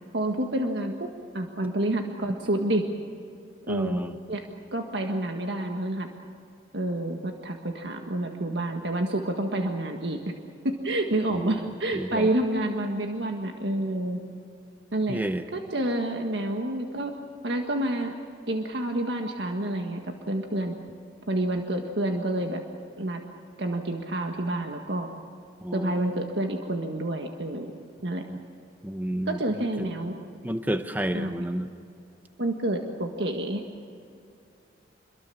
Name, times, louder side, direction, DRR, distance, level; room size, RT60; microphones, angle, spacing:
voice 1, 0.1-1.1 1.3-2.9 3.7-4.0 4.3-4.4 4.7-6.1 6.7-10.2 10.6-14.2 14.9-15.2 15.5-17.1 17.4-18.1 18.5-20.0 20.3-20.8 21.3-22.6 23.0-23.2 23.6-25.1 25.7-27.7 28.0-28.2 29.3-30.2 31.1-31.5 32.4-33.6, right 1 dB, 75° right, 3 dB, 1.7 m, -28 dB
voice 2, 3.7-4.1 11.3-11.7 11.9-12.3 15.1-15.5 25.6-26.4 28.3-28.4 28.8-29.6 30.4-31.7, right 1 dB, 10° right, 8 dB, 0.8 m, -31 dB
27.0 x 22.5 x 7.1 m, 2.5 s
head